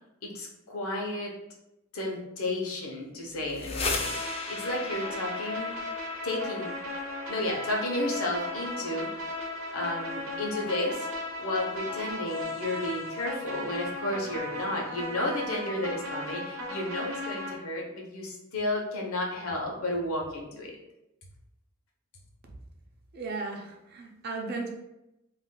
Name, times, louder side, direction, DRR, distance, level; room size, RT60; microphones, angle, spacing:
voice 1, 0.2-1.3 1.9-5.7 6.2-6.7 7.3-9.2 9.7-11.1 11.4-20.7, left 1 dB, 80° left, -1 dB, 0.8 m, -32 dB
sound 1, 3.3-13.1, left 3 dB, 25° left, 0.3 m, -40 dB
sound 2, 3.8-17.5, left 2 dB, 75° right, 0.8 m, -36 dB
voice 2, 23.1-24.7, right 3 dB, 50° right, 1 dB, 0.5 m, -35 dB
2.5 x 2.2 x 3.7 m, 0.89 s
head